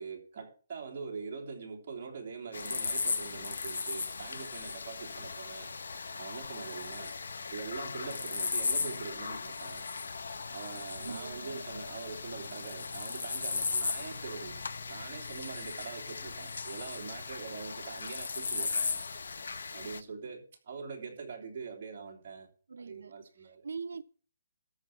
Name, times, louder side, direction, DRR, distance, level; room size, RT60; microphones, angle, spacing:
voice 1, 0.0-5.7 6.2-7.1 7.5-9.9 10.5-14.6 14.9-19.0 19.7-22.5 22.8-23.7, right 5 dB, 30° right, 3.1 m, -43 dB
sound 1, 2.5-20.0, left 4 dB, 85° left, 0.9 m, -37 dB
voice 2, 11.0-11.7 22.7-24.0, right 5 dB, 85° right, 0.5 m, -43 dB
13.5 x 5.2 x 7.3 m
hypercardioid pair, 180°, 0 cm